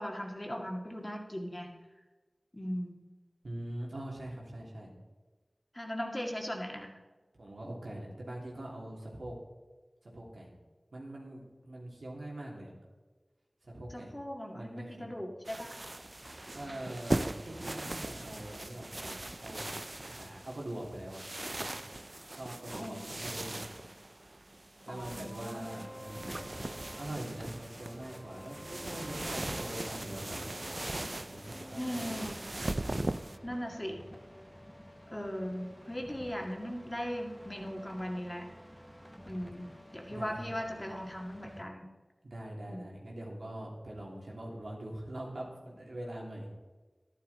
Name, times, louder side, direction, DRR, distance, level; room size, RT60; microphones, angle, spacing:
voice 1, 0.0-1.7 2.5-2.9 5.7-6.9 13.9-15.8 22.7-23.2 24.9-25.8 31.8-32.5 33.4-34.0 35.1-38.5 39.3-41.9 42.7-42.9, equal, 20° left, 1 dB, 2.0 m, -39 dB
voice 2, 3.4-4.9 7.3-9.3 10.0-10.5 10.9-12.7 13.6-14.1 14.5-15.1 16.5-19.7 20.0-21.2 21.5-21.7 22.3-23.7 24.8-26.5 27.0-30.5 31.2-32.3 40.1-40.4 42.2-46.5, right 1 dB, 85° right, -2 dB, 3.0 m, -43 dB
sound 1, 15.4-33.4, right 1 dB, 40° right, 0.5 m, -39 dB
sound 2, 25.5-41.6, equal, ahead, 1.3 m, -51 dB
12.0 x 11.0 x 4.3 m, 1.3 s
wide cardioid pair, 50°, 0 cm